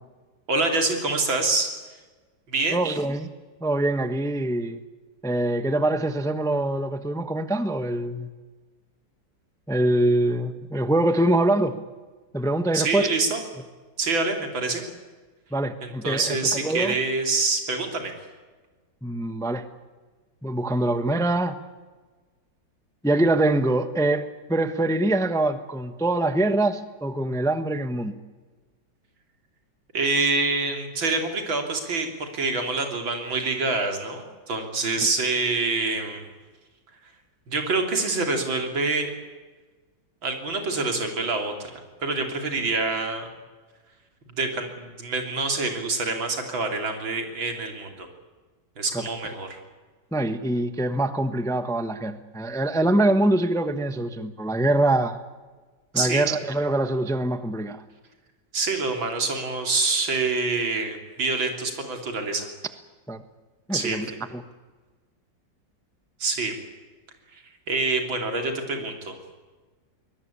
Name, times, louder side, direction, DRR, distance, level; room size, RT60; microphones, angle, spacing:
voice 1, 0.5-1.7 2.5-2.8 12.7-13.4 14.0-14.8 15.8-18.1 29.9-36.3 37.5-39.1 40.2-41.7 42.0-43.3 44.3-48.1 48.8-49.6 55.9-56.4 58.5-62.5 63.7-64.2 66.2-66.5 67.3-69.2, right 3 dB, 90° right, 4 dB, 4.0 m, -26 dB
voice 2, 2.7-3.3 3.6-4.8 5.2-8.3 9.7-11.8 12.3-13.1 15.5-16.9 19.0-19.6 20.4-21.6 23.0-28.1 48.9-49.0 50.1-55.2 55.9-57.8 63.1-63.2 63.7-64.1 64.3-64.4, right 1 dB, 5° left, 10 dB, 0.7 m, -24 dB
23.5 x 20.5 x 8.5 m, 1.3 s
omnidirectional pair, 2.1 m